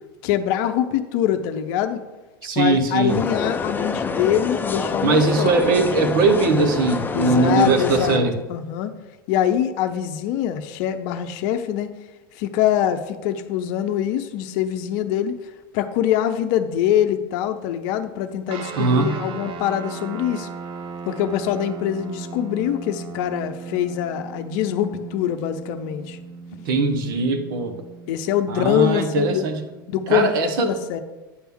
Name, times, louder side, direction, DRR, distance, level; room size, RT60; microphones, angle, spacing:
voice 1, 0.2-2.0 2.6-5.6 7.1-8.2 8.5-8.9 9.3-11.9 12.3-15.4 15.7-20.5 21.1-26.2 28.1-29.4 29.9-31.0, left 10 dB, 55° left, 9 dB, 0.7 m, -24 dB
voice 2, 2.4-3.2 5.0-8.4 18.8-19.2 26.7-27.8 28.5-29.6 30.1-30.7, right 3 dB, 65° right, 7 dB, 1.2 m, -20 dB
sound 1, 3.1-8.2, left 4 dB, 15° left, 0.6 m, -27 dB
sound 2, 18.5-30.3, right 5 dB, 45° right, 1.0 m, -37 dB
9.4 x 3.5 x 6.0 m, 1.1 s
hypercardioid pair, 90°, 12 cm